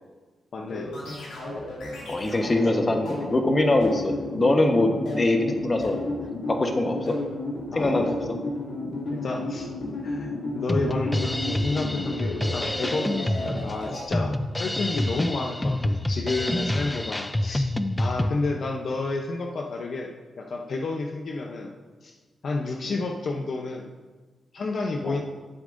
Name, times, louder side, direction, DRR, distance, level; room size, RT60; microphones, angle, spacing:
voice 1, 0.5-0.9 7.7-8.1 9.1-9.7 10.0-17.7 18.0-20.1 20.4-21.7 22.0-22.1 22.4-23.9 24.5-25.2, left 3 dB, 60° left, 2 dB, 0.7 m, -30 dB
sound 1, 0.7-14.0, left 2 dB, 80° left, 2.4 m, -33 dB
voice 2, 2.0-6.0 6.5-7.1 7.7-8.2 21.4-21.5 25.0-25.2, left 2 dB, 35° left, 4 dB, 1.1 m, -23 dB
Drum kit, 10.7-18.3, left 1 dB, 15° left, 0.5 m, -27 dB
12.5 x 7.3 x 2.6 m, 1.4 s
cardioid pair, 60°, 0 cm